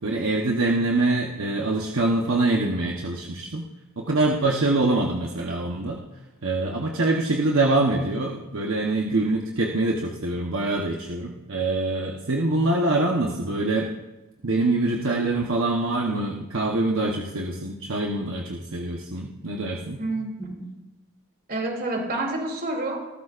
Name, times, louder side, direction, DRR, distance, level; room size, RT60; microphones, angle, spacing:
voice 1, 0.0-3.6 4.0-6.0 6.4-13.9 14.4-20.0, right 2 dB, 60° right, 0 dB, 1.0 m, -24 dB
voice 2, 20.0-20.7 21.5-23.0, right 2 dB, 45° right, 1 dB, 2.8 m, -28 dB
19.5 x 14.0 x 2.5 m, 1.1 s
head